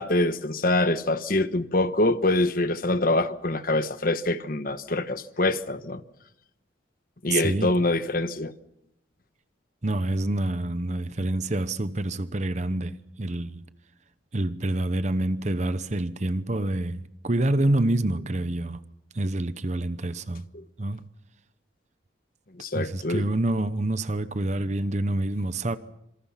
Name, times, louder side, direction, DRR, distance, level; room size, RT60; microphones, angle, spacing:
voice 1, 0.0-6.0 7.2-8.5 20.5-20.6 22.6-23.3, left 2 dB, 45° left, 1.2 m, -25 dB
voice 2, 7.3-7.8 9.8-13.6 14.3-18.8 19.1-20.4 20.8-21.1 22.7-25.8, right 1 dB, 35° right, 0.9 m, -27 dB
27.0 x 26.5 x 5.8 m
head